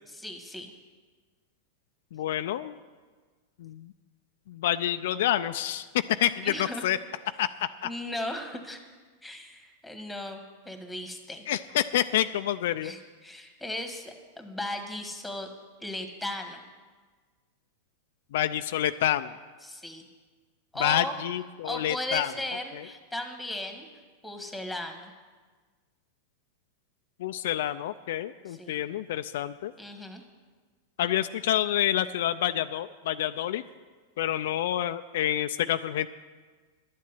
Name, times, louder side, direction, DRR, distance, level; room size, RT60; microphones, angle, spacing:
voice 1, 0.1-0.7 6.4-6.9 7.8-8.8 9.2-10.4 10.6-11.4 12.8-15.5 15.8-16.6 19.6-20.0 20.7-21.1 21.6-23.9 24.2-25.1 28.5-28.8 29.8-30.2, left 1 dB, ahead, 5 dB, 1.6 m, -36 dB
voice 2, 2.1-2.7 3.6-3.9 4.5-5.9 6.2-7.0 7.4-7.9 11.5-12.9 18.3-19.3 20.8-22.3 22.7-22.8 27.2-29.7 31.0-33.6 34.2-36.1, left 12 dB, 70° left, 10 dB, 0.4 m, -28 dB
11.5 x 7.5 x 9.6 m, 1.4 s
supercardioid pair, 130°, 0 cm